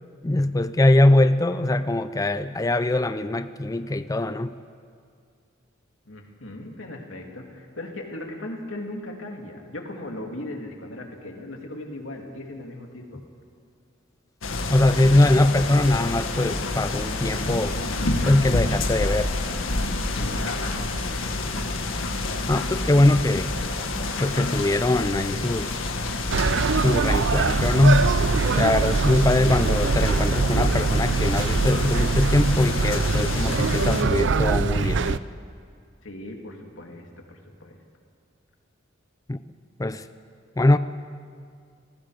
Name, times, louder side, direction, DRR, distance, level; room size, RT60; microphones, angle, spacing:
voice 1, 0.2-4.5 14.7-17.7 18.3-19.3 22.5-23.5 24.2-25.7 26.8-28.1 28.6-35.2 39.3-39.4 39.8-40.0 40.6-40.8, left 1 dB, 15° left, 12 dB, 0.5 m, -21 dB
voice 2, 6.1-13.1 20.2-20.7 36.0-37.8, left 1 dB, 70° left, 1 dB, 3.0 m, -37 dB
sound 1, 14.4-34.0, left 2 dB, 85° left, 1.8 m, -28 dB
sound 2, 26.3-35.2, right 4 dB, 60° right, 0.5 m, -23 dB
29.5 x 19.5 x 5.2 m, 2.2 s
head